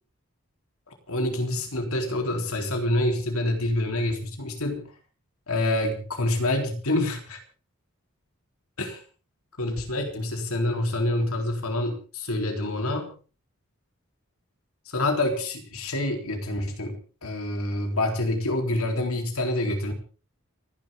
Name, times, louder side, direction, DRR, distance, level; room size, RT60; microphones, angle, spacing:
voice 1, 0.9-4.9 5.5-7.4 8.8-9.0 9.6-13.2 14.9-19.9, left 1 dB, 85° left, 4 dB, 3.8 m, -27 dB
29.5 x 11.0 x 3.8 m, 0.38 s
head